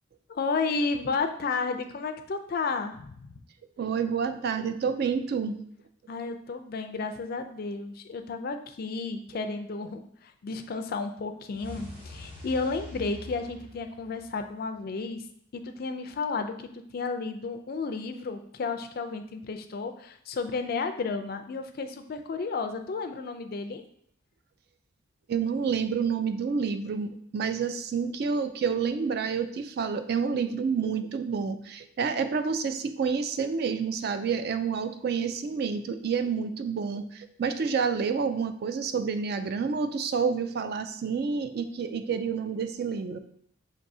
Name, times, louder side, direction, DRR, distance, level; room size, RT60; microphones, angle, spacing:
voice 1, 0.3-3.3 6.1-15.2 15.5-23.8, left 4 dB, 45° left, 7 dB, 0.3 m, -32 dB
voice 2, 3.8-5.6 25.3-43.2, right 6 dB, 50° right, 9 dB, 0.3 m, -29 dB
sound 1, 11.5-14.7, left 2 dB, 25° right, 1.1 m, -44 dB
6.0 x 2.6 x 2.6 m, 0.67 s
head